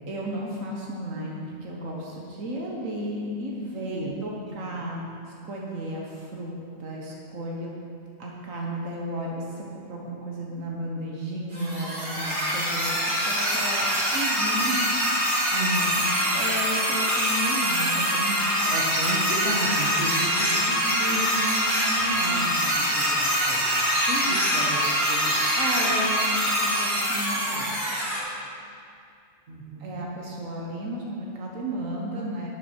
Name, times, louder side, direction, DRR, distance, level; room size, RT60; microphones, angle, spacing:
voice 1, 0.0-5.0 5.4-7.7 8.2-14.9 15.8-18.7 25.6-27.7 29.8-32.5, right 1 dB, 90° right, -2 dB, 1.7 m, -33 dB
sound 1, 11.5-28.2, equal, 40° right, 2.5 m, -24 dB
voice 2, 15.5-16.1 18.7-25.4 29.5-30.0, right 1 dB, 70° right, -2 dB, 1.8 m, -33 dB
12.0 x 9.7 x 4.5 m, 2.4 s
omnidirectional pair, 1.3 m